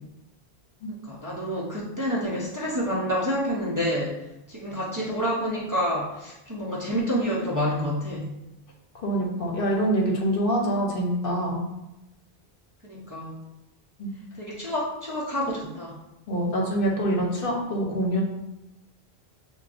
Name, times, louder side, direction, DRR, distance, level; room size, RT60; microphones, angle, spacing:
voice 1, 0.9-4.2 4.5-8.3 12.8-13.4 14.4-16.0, equal, 25° right, -6 dB, 0.6 m, -28 dB
voice 2, 9.0-11.7 14.0-14.1 16.3-18.2, right 1 dB, 65° left, -1 dB, 1.0 m, -25 dB
6.3 x 2.3 x 2.5 m, 0.93 s
omnidirectional pair, 1.0 m